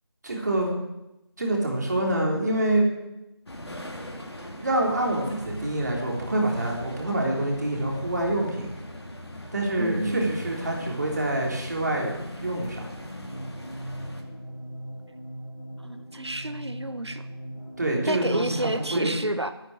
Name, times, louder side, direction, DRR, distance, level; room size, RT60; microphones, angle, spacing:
voice 1, 0.2-0.7 1.4-2.9 4.6-8.7 9.5-12.8 17.8-19.1, right 1 dB, 40° right, -1 dB, 3.6 m, -26 dB
sound 1, 3.5-14.2, left 1 dB, 75° left, 3.1 m, -40 dB
voice 2, 9.8-10.3 15.8-17.2 18.1-19.5, right 1 dB, 80° right, 10 dB, 1.4 m, -29 dB
sound 2, 9.9-18.8, equal, 10° left, 3.6 m, -40 dB
9.4 x 9.4 x 9.2 m, 0.93 s
figure-of-eight pair, 165°, 14 cm